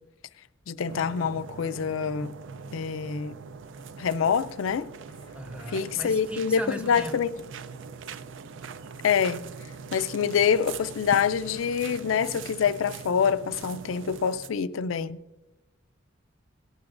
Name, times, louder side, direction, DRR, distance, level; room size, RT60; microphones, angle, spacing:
voice 1, 0.7-2.3 2.7-3.3 4.0-4.9 5.7-7.3 9.0-9.4 9.9-15.2, left 7 dB, 90° left, 0.4 m, -26 dB
sound 1, 0.9-14.5, right 5 dB, 70° right, 0.4 m, -42 dB
voice 2, 5.3-7.3, equal, 5° right, 0.6 m, -38 dB
17.5 x 12.0 x 2.5 m
head